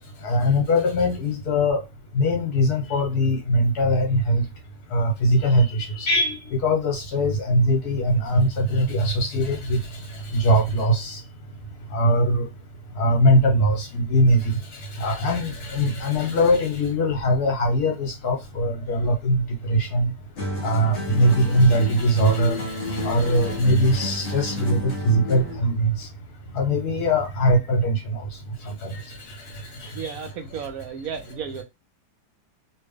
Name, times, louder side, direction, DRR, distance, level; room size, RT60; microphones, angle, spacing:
voice 1, 0.2-1.8 2.1-4.4 4.9-9.8 10.3-11.2 11.9-12.4 13.0-20.1 20.6-26.1 26.5-28.2 28.6-29.0 29.8-30.2, equal, 65° left, 1.7 m, -21 dB
sound 1, 20.4-25.7, equal, 50° left, 1.2 m, -31 dB
voice 2, 29.9-31.6, right 7 dB, 70° right, 0.9 m, -33 dB
3.3 x 2.8 x 3.4 m
omnidirectional pair, 1.8 m